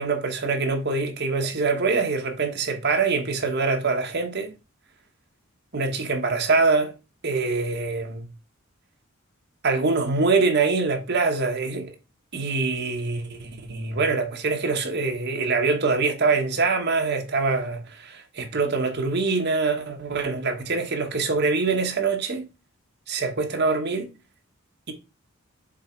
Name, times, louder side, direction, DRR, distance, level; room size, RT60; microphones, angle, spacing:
voice 1, 0.0-4.5 5.7-6.9 7.2-8.2 9.6-11.9 12.3-22.5 23.1-24.1, right 4 dB, 55° right, 1.2 m, -24 dB
6.6 x 3.5 x 4.4 m
head